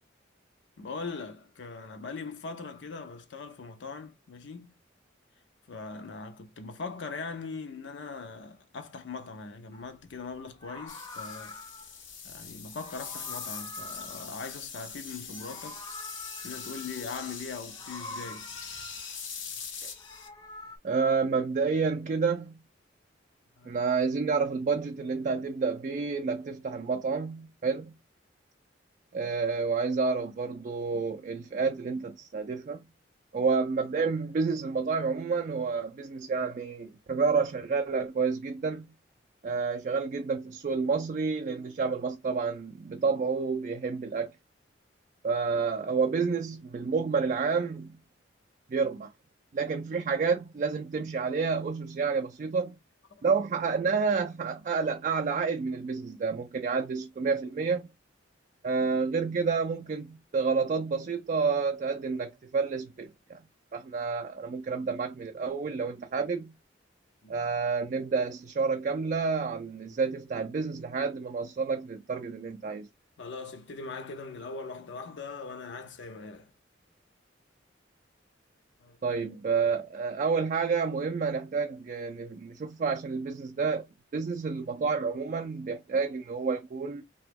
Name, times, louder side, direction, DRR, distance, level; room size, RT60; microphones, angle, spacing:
voice 1, 0.8-4.7 5.7-11.6 12.2-15.8 16.4-18.5 23.6-23.8 53.1-53.2 67.2-67.5 73.2-76.5 78.8-79.0, left 4 dB, 70° left, 0.5 m, -41 dB
Meow, 9.7-9.9 10.5-12.0 12.7-15.0 15.2-17.2 17.7-19.3 19.8-20.8, left 2 dB, 20° left, 0.6 m, -46 dB
sound 1, 10.9-20.3, left 6 dB, 90° left, 0.9 m, -42 dB
voice 2, 20.8-22.6 23.6-27.9 29.1-32.8 33.3-38.9 39.4-44.3 45.2-48.0 48.7-49.1 49.5-52.8 53.2-57.9 58.6-63.4 63.7-66.5 67.3-72.9 79.0-83.9 84.1-87.0, right 5 dB, 40° right, 0.3 m, -29 dB
2.9 x 2.2 x 3.4 m
head